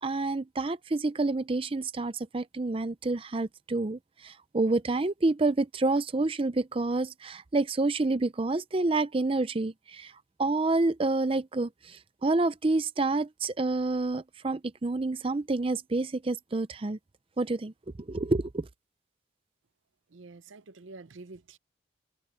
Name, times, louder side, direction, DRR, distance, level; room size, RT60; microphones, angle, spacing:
voice 1, 0.0-10.1 10.4-17.0 17.4-17.7 18.1-18.7, right 2 dB, 30° right, 0.5 m, -28 dB
voice 2, 20.1-21.6, right 3 dB, 80° right, 0.7 m, -47 dB
head